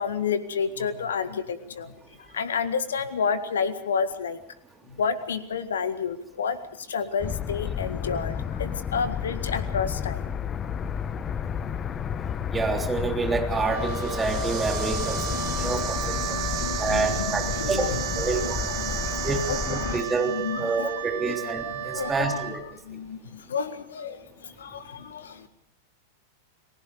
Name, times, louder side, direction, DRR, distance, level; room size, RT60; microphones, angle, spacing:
voice 1, 0.0-1.9 2.2-4.4 4.9-10.3 15.3-20.9 21.3-21.4 21.9-22.4 22.8-25.5, left 6 dB, 65° left, 12 dB, 1.7 m, -31 dB
sound 1, 7.2-20.0, left 8 dB, 25° left, 1.1 m, -31 dB
voice 2, 12.5-16.2 16.8-17.9 18.2-18.6 19.2-22.6, right 4 dB, 15° right, 3 dB, 3.5 m, -28 dB
Wind instrument woodwind instrument, 13.5-22.6, right 7 dB, 65° right, 4.5 m, -34 dB
sound 2, 13.8-20.5, right 13 dB, 40° right, 2.3 m, -36 dB
30.0 x 20.5 x 5.0 m, 0.71 s
figure-of-eight pair, 90°, 0 cm